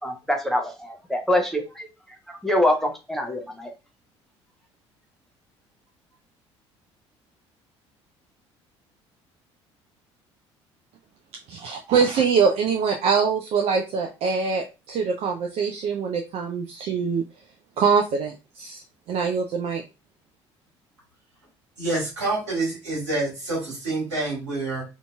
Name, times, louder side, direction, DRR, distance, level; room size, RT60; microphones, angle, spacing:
voice 1, 0.0-1.9 2.3-3.7, left 1 dB, ahead, 3 dB, 0.7 m, -25 dB
voice 2, 11.5-17.2 17.8-18.8 19.1-19.8, right 5 dB, 45° right, 2 dB, 0.4 m, -23 dB
voice 3, 21.8-24.8, right 2 dB, 80° right, -5 dB, 1.4 m, -27 dB
2.7 x 2.6 x 2.2 m, 0.28 s
figure-of-eight pair, 55°, 15 cm